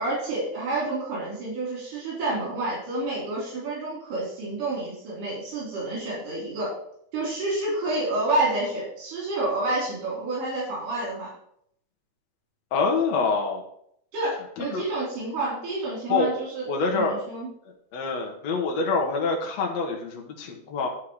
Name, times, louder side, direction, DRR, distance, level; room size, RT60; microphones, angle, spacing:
voice 1, 0.0-6.7 7.1-11.3 14.1-16.7 16.9-17.5, right 2 dB, 90° right, -5 dB, 5.1 m, -29 dB
voice 2, 12.7-13.6 14.6-14.9 16.1-16.3 16.7-17.2 17.9-20.9, left 4 dB, 65° left, 0 dB, 2.3 m, -26 dB
11.5 x 4.6 x 6.4 m, 0.70 s
omnidirectional pair, 3.6 m